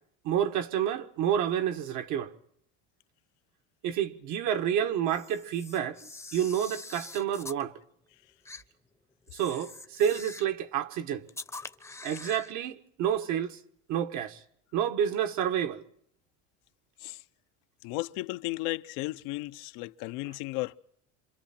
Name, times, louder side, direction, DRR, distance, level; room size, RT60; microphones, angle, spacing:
voice 1, 0.2-2.3 3.8-6.0 6.3-7.7 9.3-11.2 12.0-13.6 13.9-14.4 14.7-15.8, right 9 dB, 65° right, 1.6 m, -29 dB
Camera, 5.1-7.6 8.5-8.6 9.3-10.6 11.3-12.5, left 3 dB, 10° left, 0.8 m, -44 dB
voice 2, 17.8-20.8, left 21 dB, 85° left, 0.8 m, -34 dB
27.5 x 26.0 x 4.4 m
cardioid pair, 140°, 32 cm